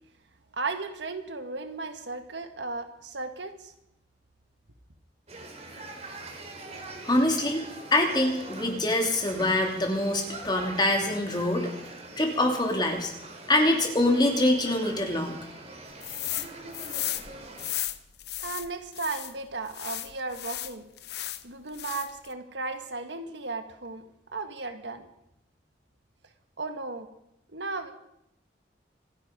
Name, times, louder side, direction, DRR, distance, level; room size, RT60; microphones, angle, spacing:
voice 1, 0.5-3.7 18.4-20.8 21.4-24.0 24.3-25.1 26.6-27.1 27.5-27.9, right 3 dB, 80° right, 7 dB, 1.6 m, -35 dB
sound 1, 5.3-17.7, right 2 dB, 35° right, 3.1 m, -43 dB
voice 2, 7.0-11.7 12.2-13.1 13.5-15.4, left 1 dB, 25° left, 2 dB, 2.9 m, -25 dB
sound 2, 16.0-16.5 16.7-19.3 19.7-21.4 21.7-22.3, left 14 dB, 60° left, 0.9 m, -34 dB
26.5 x 10.0 x 5.3 m, 0.81 s
head